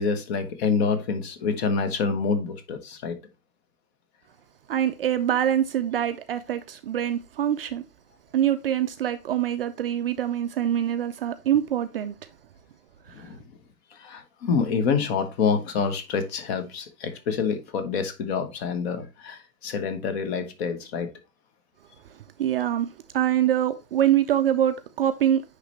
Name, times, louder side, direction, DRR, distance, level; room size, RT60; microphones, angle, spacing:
voice 1, 0.0-3.2 13.1-13.4 13.9-21.1, left 5 dB, 40° left, 1.2 m, -27 dB
voice 2, 4.7-7.8 8.3-12.1 22.4-25.4, right 10 dB, 40° right, 0.4 m, -24 dB
9.8 x 3.3 x 3.1 m
figure-of-eight pair, 110°, 47 cm